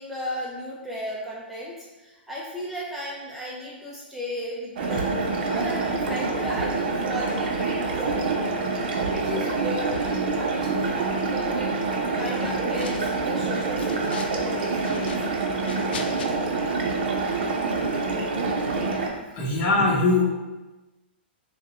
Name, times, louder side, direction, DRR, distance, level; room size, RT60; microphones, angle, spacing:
voice 1, 0.0-8.6 9.1-11.7 12.1-15.5 19.3-19.4, equal, 5° right, -6 dB, 0.5 m, -35 dB
sound 1, 4.8-19.1, right 3 dB, 60° right, 0.6 m, -26 dB
sound 2, 12.2-13.2 13.6-14.4 14.7-16.3, left 5 dB, 65° left, 0.4 m, -40 dB
voice 2, 19.4-20.2, left 2 dB, 40° left, -2 dB, 0.9 m, -21 dB
3.0 x 2.2 x 4.1 m, 1.2 s
hypercardioid pair, 130°, 6 cm